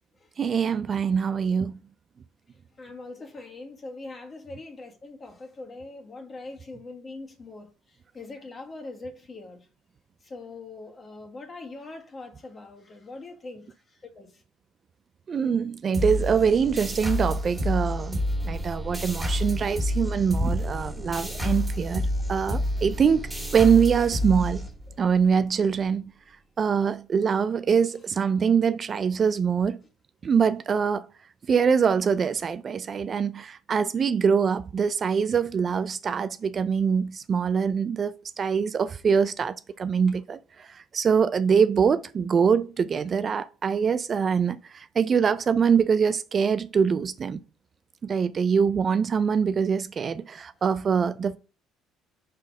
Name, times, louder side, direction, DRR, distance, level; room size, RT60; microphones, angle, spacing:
voice 1, 0.4-1.8 15.3-23.3 23.5-24.6 25.0-26.0 26.6-29.8 30.2-31.1 31.5-40.4 40.9-47.4 48.0-51.4, right 6 dB, 40° right, 0.3 m, -24 dB
voice 2, 2.8-9.7 10.2-14.4 24.9-25.1, left 3 dB, 30° left, 1.6 m, -42 dB
sound 1, 15.9-25.2, left 1 dB, ahead, 2.0 m, -29 dB
5.1 x 4.1 x 5.3 m
cardioid pair, 95°, 0 cm